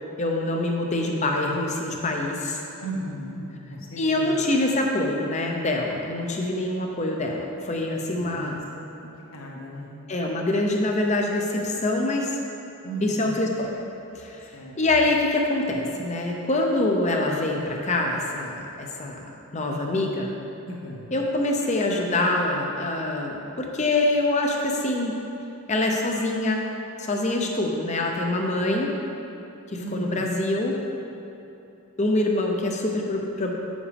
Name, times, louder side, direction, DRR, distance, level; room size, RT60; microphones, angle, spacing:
voice 1, 0.2-2.6 4.0-8.6 10.1-12.4 13.0-13.7 14.1-20.3 21.1-25.1 25.7-26.6 27.0-28.9 29.7-30.8 32.0-33.5, left 2 dB, 30° left, 1 dB, 0.7 m, -25 dB
voice 2, 2.8-4.4 8.1-9.9 12.8-13.4 14.5-14.7 20.6-21.1 29.8-30.2, right 1 dB, 65° left, -4 dB, 1.4 m, -36 dB
8.4 x 7.2 x 3.4 m, 2.9 s
head